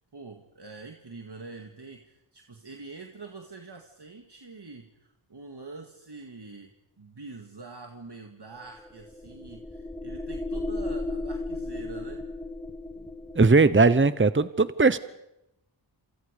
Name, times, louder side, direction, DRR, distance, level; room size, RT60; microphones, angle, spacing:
voice 1, 0.1-6.7 7.0-12.3, right 3 dB, 55° right, 3 dB, 2.1 m, -45 dB
sound 1, 8.6-13.5, left 2 dB, 5° left, 2.7 m, -35 dB
voice 2, 13.4-15.0, right 3 dB, 25° right, 14 dB, 0.9 m, -19 dB
28.0 x 27.5 x 5.2 m, 0.86 s
wide cardioid pair, 50°, 47 cm